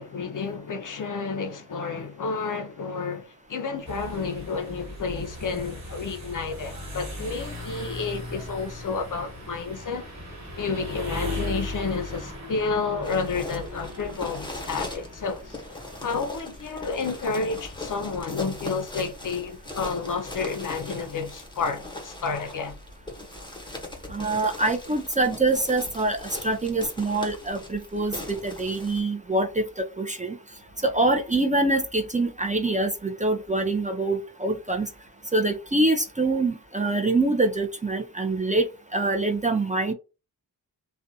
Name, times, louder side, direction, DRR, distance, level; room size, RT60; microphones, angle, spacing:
voice 1, 0.0-10.1 10.6-15.6 16.0-22.8, left 4 dB, 50° left, 0.5 m, -30 dB
sound 1, 3.8-21.9, left 1 dB, 45° right, 1.2 m, -39 dB
sound 2, 13.0-29.0, left 2 dB, 10° left, 0.9 m, -40 dB
voice 2, 24.1-30.4 30.8-34.9 35.3-38.7 38.9-39.9, right 2 dB, 20° right, 0.4 m, -25 dB
2.5 x 2.2 x 2.6 m
cardioid pair, 50°, 40 cm